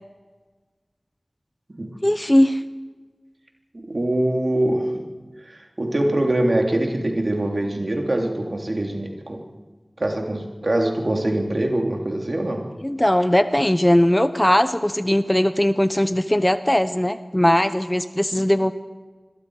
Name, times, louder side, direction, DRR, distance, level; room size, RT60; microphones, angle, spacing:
voice 1, 2.0-2.6 12.8-18.7, left 1 dB, 20° left, 10 dB, 1.0 m, -19 dB
voice 2, 3.7-5.0 5.4-9.4 10.0-12.7, right 1 dB, 60° right, 2 dB, 3.2 m, -23 dB
27.0 x 21.5 x 4.9 m, 1.3 s
wide cardioid pair, 55°, 0 cm